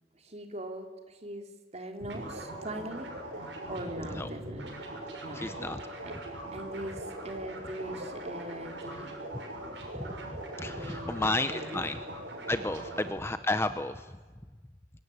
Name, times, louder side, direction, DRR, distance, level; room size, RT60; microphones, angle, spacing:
voice 1, 0.1-4.8 5.2-5.4 6.0-6.1 6.5-9.1 10.6-11.2 11.5-11.9 13.0-13.1, right 1 dB, 35° right, 4 dB, 3.3 m, -41 dB
sound 1, 2.0-13.1, right 1 dB, 75° right, 6.7 m, -41 dB
voice 2, 5.3-5.8 9.9-10.1 10.6-12.0 12.5-14.1, left 2 dB, 15° left, 10 dB, 0.8 m, -32 dB
24.5 x 22.0 x 10.0 m, 1.3 s
head